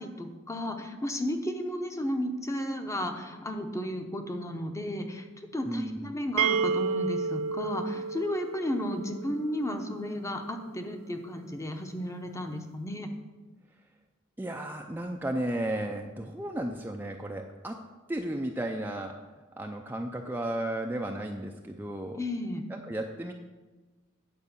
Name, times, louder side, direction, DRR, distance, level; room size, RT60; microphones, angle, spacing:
voice 1, 0.0-5.3 5.5-13.1 22.2-22.6, left 1 dB, 15° left, 5 dB, 0.8 m, -33 dB
voice 2, 5.6-6.2 14.4-17.8 18.1-19.2 19.6-22.2 22.7-23.3, right 1 dB, 10° right, 3 dB, 0.4 m, -34 dB
sound 1, 6.4-10.1, right 5 dB, 85° right, 0.3 m, -31 dB
9.3 x 4.8 x 6.7 m, 1.2 s
head